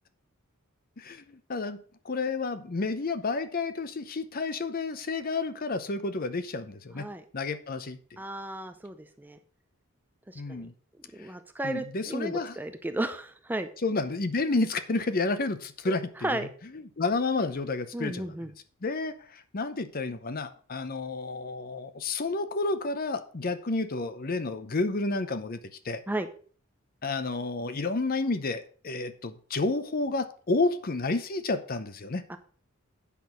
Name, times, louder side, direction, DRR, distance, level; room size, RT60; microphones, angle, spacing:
voice 1, 1.0-1.8 2.0-7.1 7.3-8.0 10.4-10.7 11.2-11.3 11.6-12.6 13.8-16.4 16.7-18.4 18.8-25.6 25.8-26.0 27.0-32.2, left 3 dB, 40° left, 11 dB, 0.7 m, -30 dB
voice 2, 8.2-9.4 10.3-10.7 11.1-13.7 15.9-16.0 16.2-16.5 17.9-18.5 26.1-26.3 32.3-32.4, right 1 dB, 10° right, 8 dB, 0.5 m, -34 dB
8.4 x 6.1 x 5.3 m, 0.43 s
head